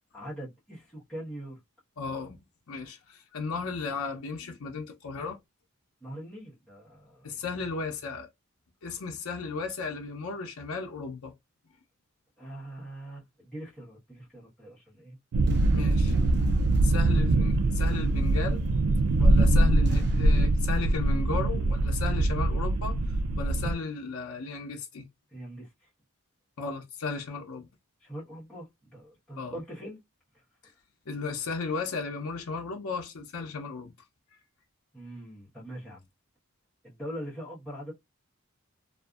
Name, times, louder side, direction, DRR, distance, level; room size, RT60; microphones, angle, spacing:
voice 1, 0.1-1.6 6.0-7.4 12.4-15.2 25.3-25.7 28.0-30.0 34.9-36.0 36.8-37.9, right 1 dB, 5° left, 1.1 m, -42 dB
voice 2, 2.0-2.4 2.7-5.4 7.2-8.3 8.8-11.3 15.7-16.1 16.8-18.6 19.2-23.0 23.4-25.1 26.6-27.7 29.4-29.6 31.1-33.9, left 4 dB, 75° left, 0.6 m, -35 dB
sound 1, 15.3-23.7, right 2 dB, 90° right, 0.4 m, -23 dB
sound 2, 15.4-20.4, equal, 50° right, 0.7 m, -41 dB
2.5 x 2.4 x 2.3 m
head